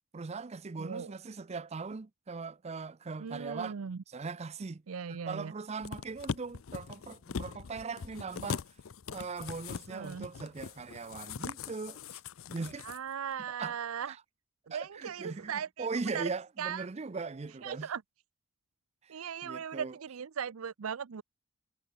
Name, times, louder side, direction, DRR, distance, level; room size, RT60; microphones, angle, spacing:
voice 1, 0.1-3.8 4.1-4.8 5.1-8.6 9.1-12.2 12.5-12.8 13.6-13.8 14.0-14.2 14.7-17.9 19.0-20.0, right 4 dB, 30° right, 0.5 m, -40 dB
voice 2, 0.8-1.1 3.2-4.0 4.9-5.5 9.9-10.3 12.8-14.2 14.7-15.9 16.1-16.3 16.6-16.8 17.6-18.0 19.1-21.2, right 7 dB, 85° right, 0.5 m, -38 dB
sound 1, 5.8-13.0 13.3-13.4, left 6 dB, 70° left, 0.5 m, -41 dB
head